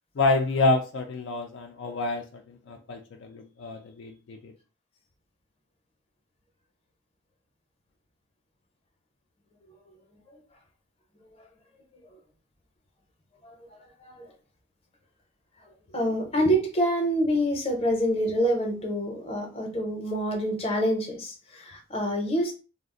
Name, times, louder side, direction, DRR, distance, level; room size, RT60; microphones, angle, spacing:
voice 1, 0.2-4.5, left 3 dB, 65° left, 4 dB, 0.4 m, -28 dB
voice 2, 13.4-14.3 15.9-22.5, equal, 30° left, 1 dB, 0.7 m, -27 dB
2.4 x 2.1 x 3.6 m, 0.34 s
head